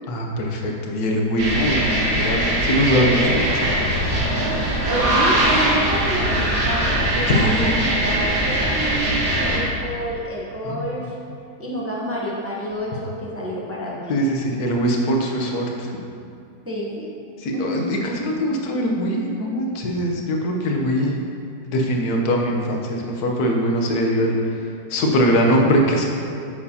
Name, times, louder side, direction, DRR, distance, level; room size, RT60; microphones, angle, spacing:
voice 1, 0.1-3.6 7.3-7.8 10.6-11.0 14.1-15.9 17.4-21.2 21.7-26.1, equal, 70° left, 0 dB, 1.4 m, -22 dB
sound 1, 1.4-9.6, right 1 dB, 75° right, 2.0 m, -21 dB
voice 2, 4.9-11.1 11.6-14.2 16.7-17.1 17.5-17.9, equal, 15° right, -4 dB, 0.6 m, -29 dB
9.7 x 6.6 x 2.8 m, 2.5 s
omnidirectional pair, 1.8 m